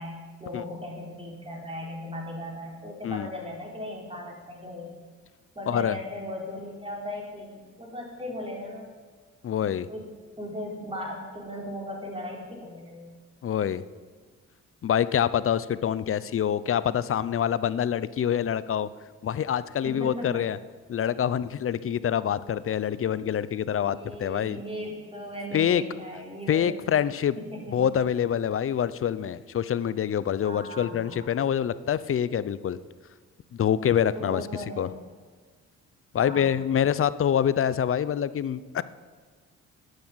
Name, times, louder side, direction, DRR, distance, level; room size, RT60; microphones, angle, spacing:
voice 1, 0.0-5.0 5.5-8.9 9.9-10.1 10.4-13.1 19.8-20.4 23.8-26.8 27.4-27.8 30.4-31.3 34.1-34.9 36.2-36.5, left 1 dB, 20° right, -1 dB, 4.4 m, -37 dB
voice 2, 5.7-6.0 9.4-9.9 13.4-13.8 14.8-18.9 19.2-20.6 20.9-24.6 25.5-25.8 26.5-27.4 27.7-32.8 33.5-34.5 34.8-34.9 36.1-38.8, left 9 dB, 45° left, 17 dB, 0.6 m, -26 dB
10.5 x 9.6 x 8.9 m, 1.5 s
cardioid pair, 90°, 30 cm